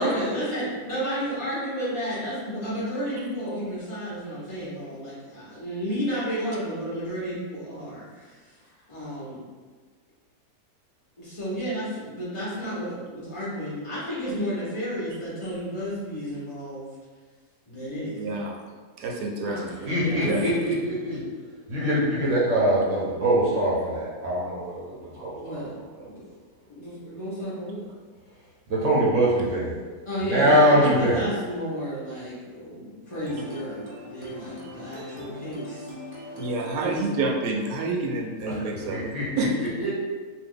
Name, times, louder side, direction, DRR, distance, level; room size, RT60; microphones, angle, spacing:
voice 1, 0.0-8.3 8.9-9.4 11.2-16.9 17.7-18.3 19.4-19.6 19.9-20.7 25.3-25.7 26.0-26.2 26.7-27.8 30.1-33.8 34.1-35.9 36.7-37.1, equal, 50° left, -9 dB, 0.3 m, -32 dB
voice 2, 18.2-18.6 19.0-19.9 20.2-20.5 36.3-39.1 39.4-39.5, right 2 dB, 75° right, 0 dB, 1.1 m, -28 dB
voice 3, 19.8-21.2 21.7-25.7 26.0-26.1 28.7-29.7 30.2-31.2 38.5-39.9, right 1 dB, 60° right, -6 dB, 0.9 m, -23 dB
sound 1, 33.2-38.7, left 1 dB, 40° right, 0.5 m, -41 dB
2.7 x 2.4 x 3.6 m, 1.4 s
omnidirectional pair, 1.8 m